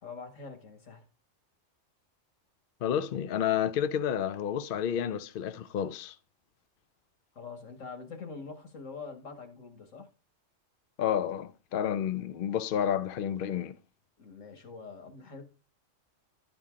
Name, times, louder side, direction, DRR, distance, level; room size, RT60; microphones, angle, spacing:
voice 1, 0.0-1.0 7.4-10.1 14.2-15.4, left 4 dB, 75° left, 1.9 m, -44 dB
voice 2, 2.8-6.1 11.0-13.8, left 9 dB, 60° left, 0.6 m, -30 dB
11.5 x 5.3 x 3.6 m
omnidirectional pair, 1.3 m